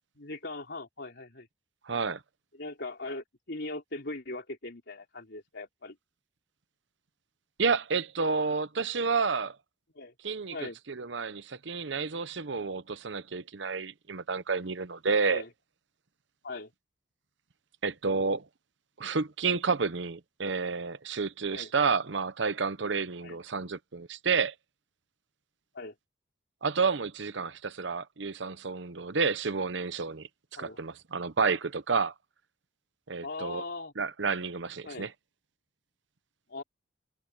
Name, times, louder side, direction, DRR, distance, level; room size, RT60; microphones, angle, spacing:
voice 1, 0.2-1.5 2.6-6.0 10.0-10.1 10.5-10.8 15.2-15.5 16.4-16.7 21.5-21.7 23.2-23.4 25.7-25.9 30.6-30.8 33.2-33.9 34.8-35.1 36.5-36.6, left 2 dB, 60° left, 3.6 m, -40 dB
voice 2, 1.8-2.2 7.6-9.6 10.2-10.6 10.9-15.4 17.8-18.4 19.0-24.5 26.6-30.3 30.6-32.1 33.1-33.6 34.0-35.1, right 4 dB, 65° right, 0.9 m, -30 dB
head